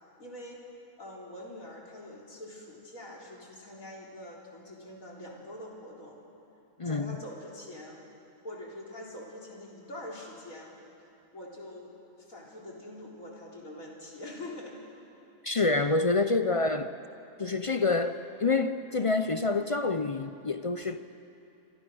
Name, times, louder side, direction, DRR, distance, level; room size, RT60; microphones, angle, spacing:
voice 1, 0.2-0.6 1.0-6.2 6.8-8.0 8.4-10.7 11.3-14.8, left 1 dB, 85° left, 4.2 m, -44 dB
voice 2, 6.8-7.2 15.4-16.9 17.4-21.0, left 3 dB, 40° left, 0.5 m, -27 dB
27.0 x 24.5 x 6.3 m
omnidirectional pair, 1.4 m